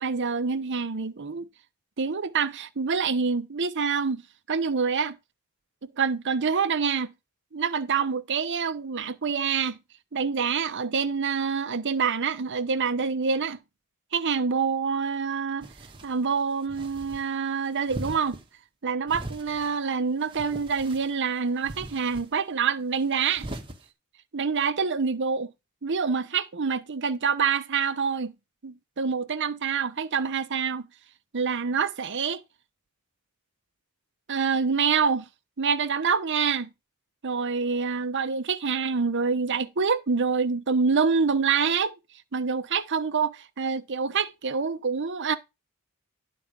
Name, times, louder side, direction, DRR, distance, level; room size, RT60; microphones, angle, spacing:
voice 1, 0.0-1.5 2.0-4.2 4.5-5.2 6.0-7.1 7.5-9.8 10.1-13.6 14.1-15.7 16.0-18.4 18.8-23.5 24.3-25.5 25.8-28.3 28.6-30.9 31.3-32.4 34.3-35.3 35.6-36.7 37.2-41.9 42.3-45.4, right 5 dB, 55° right, 0.8 m, -26 dB
sound 1, 15.6-16.2 16.7-17.3 17.9-18.4 19.1-19.7 20.2-21.1 21.6-22.3 23.2-23.8, right 1 dB, 25° right, 1.3 m, -40 dB
11.0 x 4.2 x 5.2 m
head